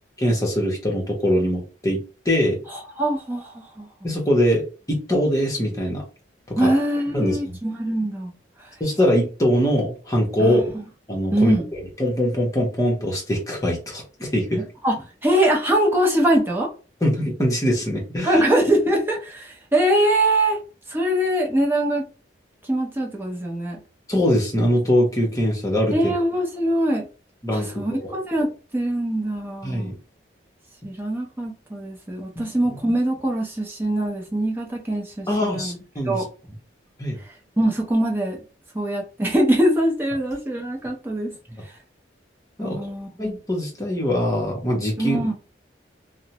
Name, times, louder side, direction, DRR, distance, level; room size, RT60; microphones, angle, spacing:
voice 1, 0.2-2.0 2.2-2.6 4.0-6.0 6.5-6.7 7.1-7.6 8.8-10.8 11.1-11.5 12.0-14.6 17.0-18.4 24.1-26.1 27.4-28.2 29.6-29.9 32.4-32.5 35.3-36.2 37.0-37.2 42.6-42.9 43.2-45.2, equal, 20° left, 0.8 m, -22 dB
voice 2, 2.7-3.9 6.6-8.3 10.4-10.8 11.3-11.7 14.5-16.7 18.2-20.6 20.9-22.0 22.7-23.8 25.9-27.0 27.5-29.9 30.8-35.8 36.1-36.3 37.6-38.4 38.7-41.3 42.6-43.1 45.0-45.3, right 1 dB, 10° right, 0.6 m, -23 dB
2.4 x 2.0 x 2.8 m
head